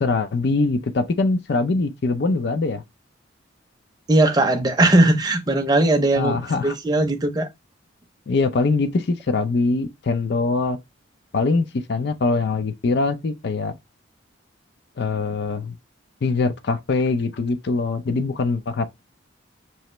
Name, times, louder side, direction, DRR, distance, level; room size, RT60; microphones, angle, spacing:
voice 1, 0.0-2.8 6.1-6.8 8.3-10.8 11.3-13.7 15.0-15.7 16.2-18.8, left 3 dB, 55° left, 0.4 m, -22 dB
voice 2, 4.1-7.5, right 2 dB, 20° right, 0.6 m, -19 dB
5.4 x 2.9 x 3.1 m
head